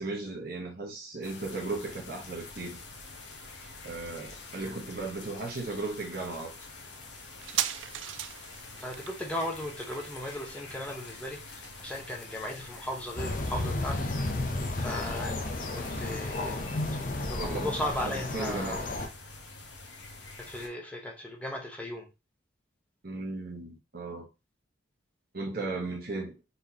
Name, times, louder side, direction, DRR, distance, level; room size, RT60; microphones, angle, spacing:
voice 1, 0.0-2.8 3.8-6.5 17.4-17.7 18.0-18.8 23.0-24.3 25.3-26.4, right 3 dB, 50° right, -1 dB, 1.1 m, -36 dB
sound 1, 1.2-20.7, left 3 dB, 65° left, 1.1 m, -47 dB
sound 2, 7.4-14.5 14.7-14.8, right 12 dB, 75° right, 0.4 m, -40 dB
voice 2, 8.8-14.1 14.8-15.4 15.7-16.7 17.3-18.9 20.4-22.1, left 1 dB, 5° left, 0 dB, 0.8 m, -37 dB
sound 3, 13.2-19.1, left 2 dB, 45° left, 0.7 m, -33 dB
4.3 x 3.5 x 2.8 m, 0.27 s
head